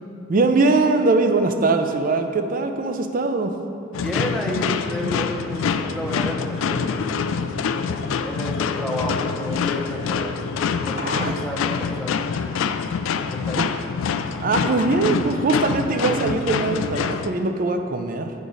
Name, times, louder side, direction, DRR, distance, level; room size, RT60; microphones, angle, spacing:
voice 1, 0.3-3.5 11.0-11.3 13.6-13.7 14.4-18.3, right 3 dB, 45° right, 6 dB, 0.4 m, -21 dB
Wind instrument woodwind instrument, 1.7-11.5, right 3 dB, 65° right, 1.3 m, -44 dB
sound 1, 3.9-17.3, left 6 dB, 80° left, 0.3 m, -25 dB
voice 2, 4.0-7.2 8.2-10.4 10.8-12.3 13.3-13.6, equal, 5° left, -1 dB, 0.7 m, -31 dB
8.2 x 4.9 x 4.0 m, 2.5 s
head